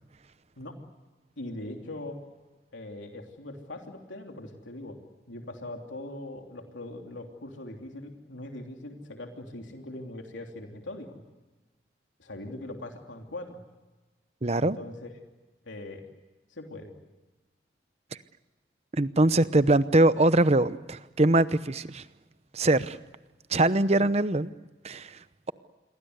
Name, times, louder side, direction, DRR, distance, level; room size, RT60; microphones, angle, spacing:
voice 1, 1.4-2.2 2.7-5.0 5.3-11.2 12.2-13.6 14.5-15.2 15.6-16.0 16.5-16.9, left 1 dB, 90° left, 3 dB, 3.2 m, -41 dB
voice 2, 14.4-14.8 18.9-22.0 22.5-23.0 23.5-24.5 24.8-25.1, right 2 dB, 35° right, 14 dB, 0.8 m, -22 dB
28.0 x 23.0 x 8.1 m, 1.2 s
head